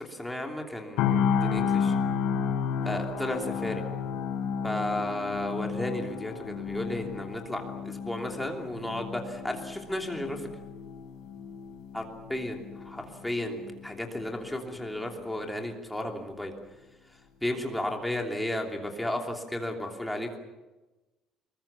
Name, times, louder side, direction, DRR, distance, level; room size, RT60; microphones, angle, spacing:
voice 1, 0.1-1.9 2.8-3.8 4.6-10.5 11.9-12.0 12.3-16.5 17.4-20.4, left 1 dB, 5° left, 2 dB, 3.0 m, -33 dB
sound 1, 1.0-15.0 15.3-15.5, left 6 dB, 75° left, 7.2 m, -32 dB
26.5 x 22.0 x 7.3 m, 1.1 s
cardioid pair, 170°, 0 cm